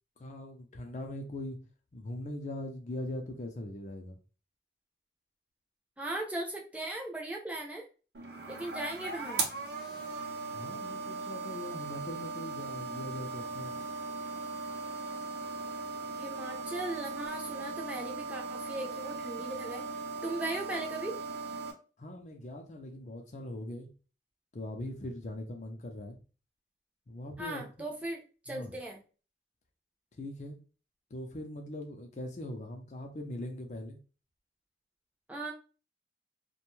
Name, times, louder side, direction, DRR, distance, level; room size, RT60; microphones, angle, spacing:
voice 1, 0.2-1.6 1.9-4.2 10.5-13.8 22.0-23.9 24.5-26.2 27.1-27.9 28.5-28.7 30.2-30.6 31.1-34.0, left 1 dB, 40° left, 0.5 m, -41 dB
voice 2, 6.0-7.9 8.5-9.4 16.1-19.8 20.2-21.2 27.4-29.0 35.3-35.5, right 2 dB, 10° right, 0.5 m, -38 dB
sound 1, 8.1-21.7, right 4 dB, 65° right, 0.6 m, -38 dB
2.5 x 2.2 x 3.0 m
head